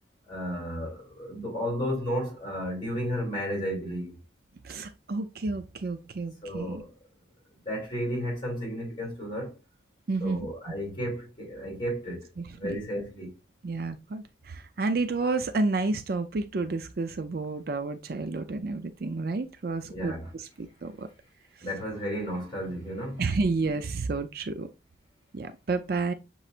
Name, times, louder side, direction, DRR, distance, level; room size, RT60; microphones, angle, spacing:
voice 1, 0.3-4.2 6.4-6.9 7.6-9.6 10.2-12.3 12.5-13.3 19.9-20.4 21.6-23.2, equal, 25° left, 2.9 m, -33 dB
voice 2, 4.6-6.8 10.1-10.5 12.4-12.8 13.6-21.1 23.2-24.7 25.3-26.1, right 3 dB, 50° right, 0.4 m, -30 dB
6.6 x 3.1 x 2.4 m
head